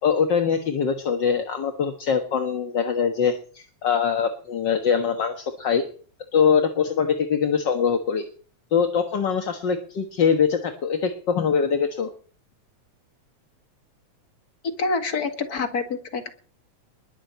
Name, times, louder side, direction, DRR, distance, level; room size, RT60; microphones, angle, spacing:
voice 1, 0.0-5.8 6.3-8.2 8.7-12.1, left 6 dB, 50° left, 6 dB, 1.5 m, -23 dB
voice 2, 14.6-16.3, left 4 dB, 35° left, 6 dB, 2.2 m, -27 dB
21.0 x 7.4 x 8.4 m, 0.43 s
omnidirectional pair, 3.4 m